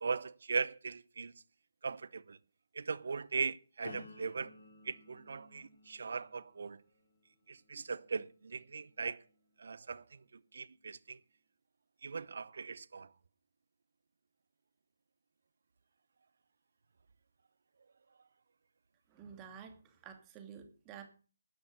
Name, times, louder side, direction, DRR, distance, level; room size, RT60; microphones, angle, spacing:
voice 1, 0.0-1.3 1.8-2.4 2.7-4.5 4.8-6.8 7.5-9.2 9.6-10.0 10.5-11.2 12.0-13.1, right 5 dB, 55° right, 0.9 m, -39 dB
sound 1, 3.8-9.7 10.2-10.6, left 3 dB, 60° left, 3.6 m, -57 dB
voice 2, 19.1-21.1, right 7 dB, 20° right, 2.5 m, -51 dB
11.5 x 10.0 x 6.7 m
figure-of-eight pair, 145°, 0 cm